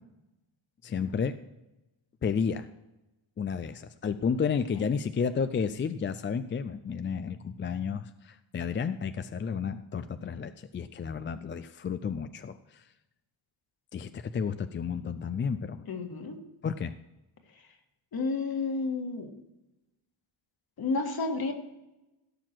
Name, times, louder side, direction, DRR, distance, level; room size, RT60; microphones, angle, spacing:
voice 1, 0.8-1.4 2.2-2.7 3.4-12.8 13.9-15.8 16.6-17.0, left 6 dB, 25° left, 11 dB, 0.3 m, -32 dB
voice 2, 15.9-16.4 18.1-19.3 20.8-21.5, left 3 dB, 50° left, 4 dB, 1.9 m, -31 dB
16.5 x 6.0 x 4.6 m, 0.97 s
cardioid pair, 125°, 48 cm